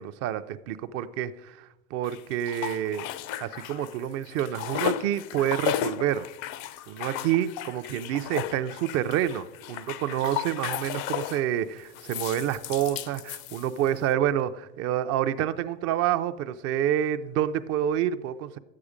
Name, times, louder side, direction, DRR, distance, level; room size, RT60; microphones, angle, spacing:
voice 1, 0.0-3.1 3.4-6.3 6.9-18.6, right 11 dB, 35° right, 0.5 m, -28 dB
sound 1, 2.0-4.0 4.3-11.5 11.9-14.0, left 12 dB, 40° left, 0.5 m, -34 dB
12.0 x 8.6 x 5.0 m
hypercardioid pair, 115°, 41 cm